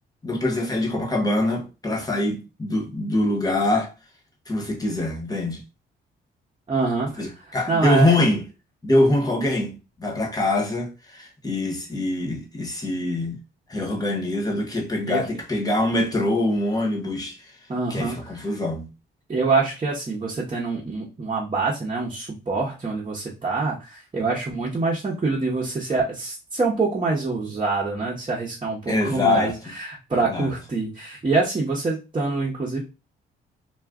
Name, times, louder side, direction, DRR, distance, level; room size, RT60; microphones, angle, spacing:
voice 1, 0.2-3.9 4.5-5.6 7.2-8.5 8.8-13.4 13.7-17.5 17.9-18.9 28.9-29.6 30.1-30.5, left 2 dB, 20° left, 1.0 m, -24 dB
voice 2, 6.7-7.2 7.7-8.1 15.1-15.2 17.7-18.3 19.3-32.8, right 3 dB, 25° right, 0.9 m, -25 dB
2.4 x 2.3 x 3.6 m
cardioid pair, 90°, 20 cm